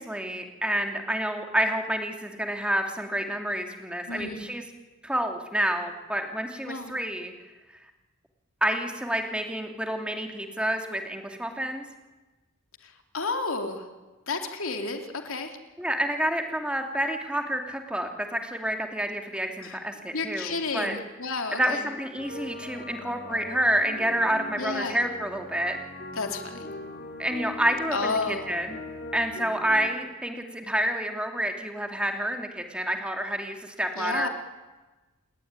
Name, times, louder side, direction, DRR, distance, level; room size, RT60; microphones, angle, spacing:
voice 1, 0.0-4.6 5.0-7.3 8.6-11.8 15.8-20.9 21.5-25.8 27.2-28.8 29.1-34.3, right 1 dB, 5° right, 4 dB, 2.7 m, -29 dB
voice 2, 4.1-4.5 6.7-6.9 12.8-13.8 14.3-15.6 19.6-19.8 20.1-21.8 24.6-25.0 26.2-26.7 27.9-28.5 34.0-34.3, left 3 dB, 75° left, 5 dB, 2.9 m, -31 dB
sound 1, 22.2-29.9, left 2 dB, 45° left, 2.9 m, -40 dB
29.0 x 20.0 x 9.7 m, 1.2 s
head